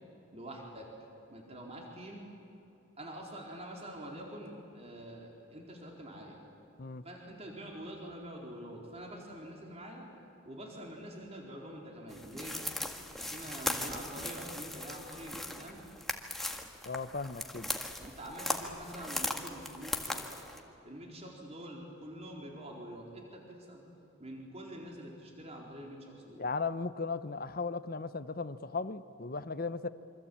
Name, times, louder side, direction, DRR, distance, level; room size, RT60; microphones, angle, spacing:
voice 1, 0.3-0.9 1.3-2.2 3.0-6.4 7.0-10.1 10.5-12.6 13.2-15.8 18.0-20.5 20.8-23.8 24.2-26.4, right 1 dB, 30° right, 4.3 m, -46 dB
sound 1, 12.1-20.6, left 1 dB, ahead, 1.7 m, -38 dB
voice 2, 16.8-17.7 26.4-29.9, left 4 dB, 45° left, 0.9 m, -36 dB
27.0 x 25.0 x 8.7 m
head